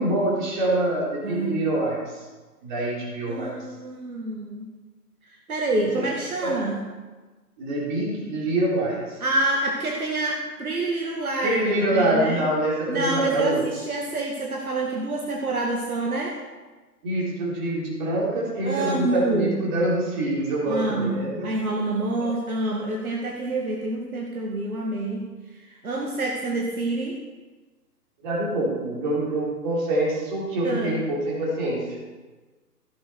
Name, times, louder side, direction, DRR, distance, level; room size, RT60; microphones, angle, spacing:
voice 1, 0.0-2.2 2.6-3.5 6.4-6.5 7.6-9.2 11.4-13.6 17.0-21.5 22.2-22.3 28.2-32.0, right 1 dB, 30° right, -5 dB, 3.8 m, -25 dB
voice 2, 1.2-1.6 3.3-4.7 5.5-6.8 9.2-11.6 11.9-12.4 12.9-16.4 18.6-19.6 20.7-25.3 25.6-27.2 30.6-31.0, right 2 dB, 60° right, -1 dB, 1.9 m, -27 dB
15.5 x 7.5 x 4.6 m, 1.3 s
figure-of-eight pair, 140°, 48 cm